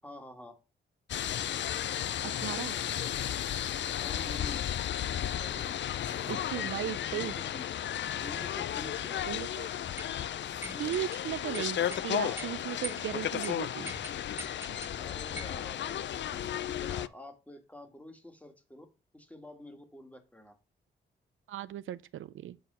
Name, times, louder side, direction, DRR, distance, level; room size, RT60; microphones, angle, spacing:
voice 1, 0.0-0.6 4.0-4.7 5.1-6.7 7.1-7.8 8.2-9.3 10.7-10.9 12.2-12.5 15.0-18.9 19.1-20.6, left 1 dB, 5° left, 1.9 m, -48 dB
sound 1, 1.1-17.1, left 10 dB, 65° left, 0.4 m, -34 dB
voice 2, 2.2-2.8 6.3-7.3 9.3-9.7 10.8-13.9 14.7-14.8 21.5-22.6, right 12 dB, 85° right, 0.4 m, -37 dB
sound 2, 10.0-10.1 10.6-11.2 11.5-12.0 12.4-12.5 12.8-13.1 13.4-13.5 13.9-14.9 15.4-15.6, right 1 dB, 10° right, 1.6 m, -42 dB
7.7 x 4.3 x 5.4 m
cardioid pair, 65°, 20 cm